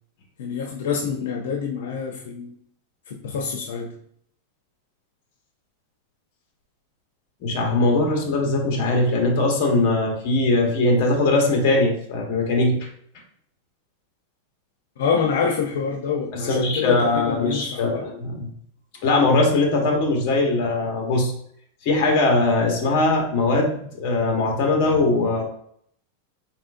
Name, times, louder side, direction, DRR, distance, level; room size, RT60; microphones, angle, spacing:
voice 1, 0.4-2.6 3.1-3.9 15.0-18.0, left 6 dB, 80° left, 1 dB, 0.7 m, -26 dB
voice 2, 7.4-12.9 16.3-18.5 19.0-21.3 21.8-25.4, left 2 dB, 45° left, 1 dB, 1.3 m, -21 dB
4.1 x 4.1 x 2.6 m, 0.65 s
supercardioid pair, 160°, 0 cm